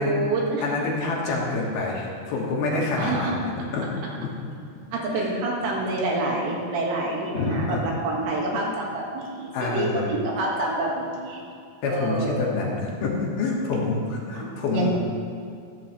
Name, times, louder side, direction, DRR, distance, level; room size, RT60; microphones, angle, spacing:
voice 1, 0.0-0.8 3.0-3.4 4.9-11.4 11.8-12.5 14.4-14.9, right 2 dB, 90° right, -2 dB, 4.1 m, -27 dB
voice 2, 0.6-3.4 3.7-3.9 4.2-4.3 5.1-5.3 7.3-7.8 9.5-10.1 11.8-14.9, left 3 dB, 70° left, -3 dB, 3.3 m, -27 dB
13.5 x 12.5 x 3.3 m, 2.4 s
omnidirectional pair, 4.9 m